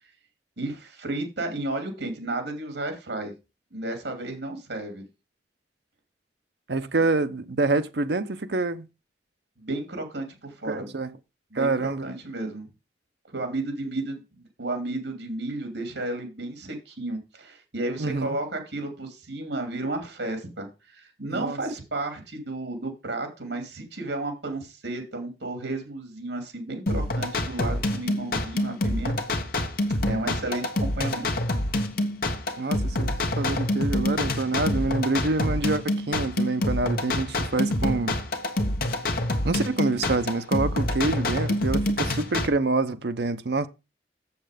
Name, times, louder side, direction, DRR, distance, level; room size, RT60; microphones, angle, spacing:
voice 1, 0.6-3.3 3.7-5.0 9.6-11.0 11.5-12.7 13.3-29.2 30.0-31.3, right 2 dB, 80° right, 2.7 m, -33 dB
voice 2, 6.7-8.9 10.7-11.1 11.5-12.1 18.0-18.4 21.3-21.6 32.6-38.2 39.4-43.7, right 3 dB, 65° right, 0.8 m, -26 dB
sound 1, 26.9-42.5, left 1 dB, 55° left, 1.3 m, -27 dB
7.6 x 7.0 x 5.0 m
head